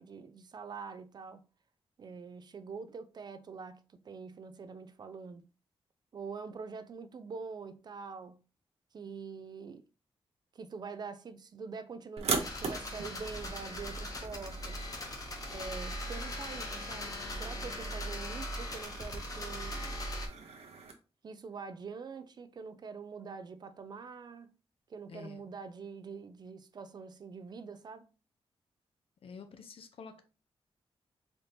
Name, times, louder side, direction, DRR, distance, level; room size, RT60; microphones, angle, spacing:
voice 1, 0.0-1.5 2.0-5.5 6.1-8.4 8.9-9.8 10.5-14.9 15.5-20.0 21.2-24.5 24.9-28.1, right 5 dB, 40° right, 0.3 m, -45 dB
sound 1, 12.2-20.9, right 4 dB, 80° right, 0.8 m, -41 dB
sound 2, 12.4-20.3, left 1 dB, 35° left, 0.8 m, -39 dB
voice 2, 25.1-25.4 29.2-30.2, left 5 dB, 60° left, 0.6 m, -48 dB
4.1 x 2.7 x 3.3 m
wide cardioid pair, 160°, 10 cm